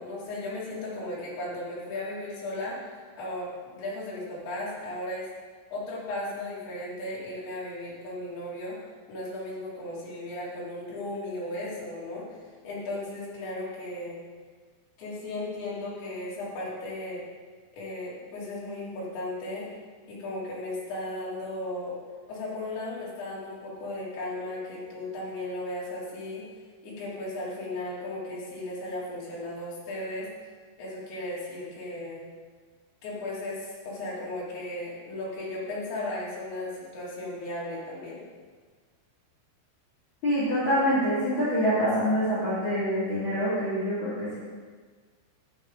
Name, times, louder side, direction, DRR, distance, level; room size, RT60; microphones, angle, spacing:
voice 1, 0.0-2.9 3.2-5.3 5.7-8.8 9.1-14.2 15.0-17.2 17.7-19.7 20.1-22.0 22.3-26.5 26.8-30.3 30.8-32.2 33.0-38.2, left 1 dB, 75° left, -7 dB, 5.1 m, -36 dB
voice 2, 40.2-44.4, equal, 30° left, -10 dB, 2.9 m, -25 dB
11.5 x 10.5 x 4.0 m, 1.5 s
omnidirectional pair, 5.2 m